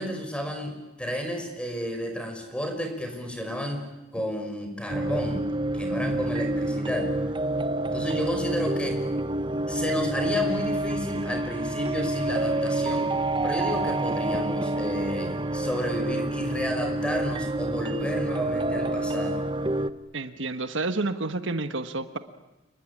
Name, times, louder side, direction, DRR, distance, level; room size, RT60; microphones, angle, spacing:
voice 1, 0.0-5.5 5.7-7.1 7.9-9.0 9.7-13.1 13.4-19.5, equal, 5° left, 4 dB, 5.5 m, -32 dB
sound 1, 4.9-19.9, right 2 dB, 25° right, 0.9 m, -28 dB
voice 2, 20.1-22.2, right 3 dB, 80° right, 9 dB, 1.4 m, -29 dB
29.0 x 20.5 x 9.9 m, 1.0 s
head